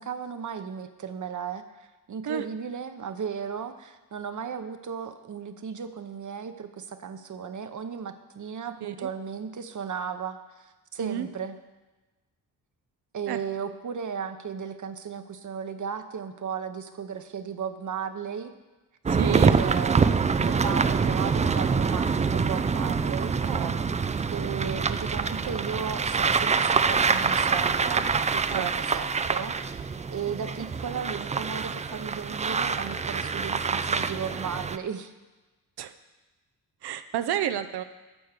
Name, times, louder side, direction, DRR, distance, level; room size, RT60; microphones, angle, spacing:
voice 1, 0.0-11.5 13.1-18.5 19.3-23.4 24.3-35.1, right 7 dB, 50° right, 9 dB, 0.9 m, -35 dB
sound 1, 19.1-34.8, right 5 dB, 20° right, 0.3 m, -25 dB
voice 2, 19.1-19.6 23.4-23.7 28.5-28.7 35.8-35.9 36.8-37.8, right 10 dB, 75° right, 10 dB, 0.7 m, -30 dB
12.5 x 4.7 x 6.7 m, 1.2 s
cardioid pair, 75°, 39 cm